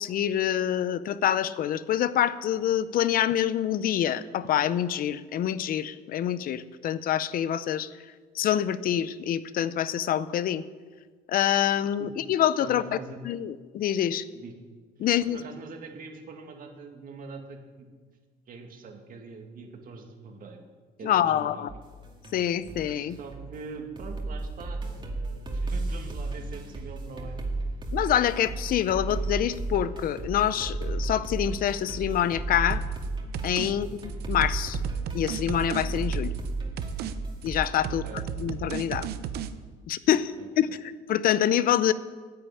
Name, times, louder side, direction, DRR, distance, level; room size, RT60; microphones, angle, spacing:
voice 1, 0.0-7.9 8.3-10.6 11.3-13.0 13.2-14.2 15.0-15.4 21.0-21.7 22.3-23.2 27.9-32.8 33.4-34.8 35.1-36.3 37.4-38.0 38.4-39.1 39.9-40.3 40.6-41.9, left 10 dB, 60° left, 15 dB, 0.6 m, -26 dB
voice 2, 12.6-13.2 14.3-14.5 15.0-17.9 18.5-20.6 21.0-21.7 22.9-27.5 33.6-33.9 37.8-38.2 40.4-40.8, right 4 dB, 55° right, 3 dB, 2.2 m, -43 dB
sound 1, 21.7-37.7, right 2 dB, 30° right, 2.3 m, -34 dB
sound 2, 32.7-33.1 33.3-33.7 34.0-36.5 36.8-37.1 37.4-39.5, right 8 dB, 70° right, 0.8 m, -34 dB
10.5 x 8.8 x 8.6 m, 1.5 s
cardioid pair, 110°, 17 cm